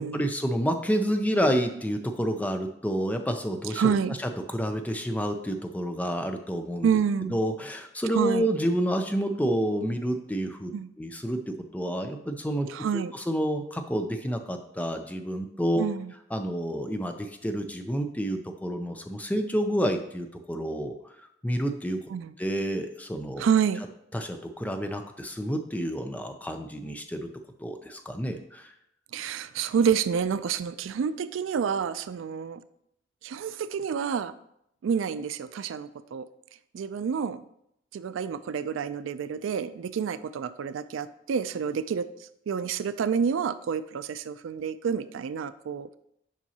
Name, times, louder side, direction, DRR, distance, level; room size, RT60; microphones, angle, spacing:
voice 1, 0.0-4.0 4.5-6.9 7.2-10.7 11.0-12.7 12.9-15.9 16.3-20.9 21.4-22.0 22.4-23.4 24.1-27.3 27.6-28.7, equal, 10° left, 6 dB, 0.5 m, -29 dB
voice 2, 3.8-4.1 6.8-7.4 8.1-8.5 10.7-10.9 12.7-13.1 15.8-16.1 22.1-22.3 23.4-23.8 29.1-32.6 33.2-34.3 34.8-36.3 36.7-37.4 37.9-42.1 42.5-46.0, right 7 dB, 80° right, 14 dB, 0.3 m, -28 dB
7.4 x 5.3 x 2.8 m, 0.75 s
head